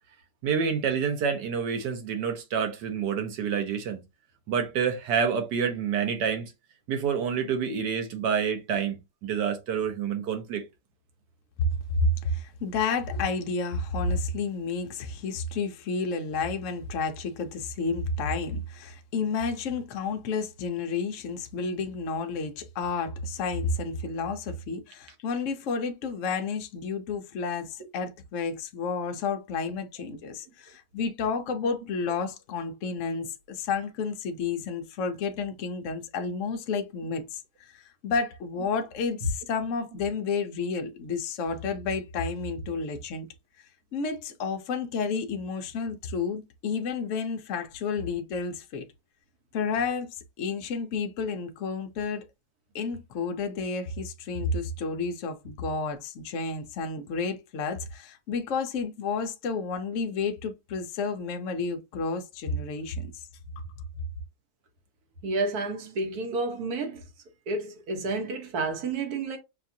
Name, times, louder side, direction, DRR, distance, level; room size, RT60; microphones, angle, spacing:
voice 1, 0.4-4.0 4.5-6.5 6.9-9.0 9.2-10.6, right 7 dB, 85° right, 1.6 m, -28 dB
voice 2, 11.7-43.3 43.9-48.8 49.5-52.3 52.7-63.2, left 4 dB, 60° left, 0.9 m, -31 dB
voice 3, 65.2-67.0 67.5-69.4, right 3 dB, 65° right, 1.4 m, -30 dB
5.8 x 2.4 x 2.6 m
omnidirectional pair, 1.8 m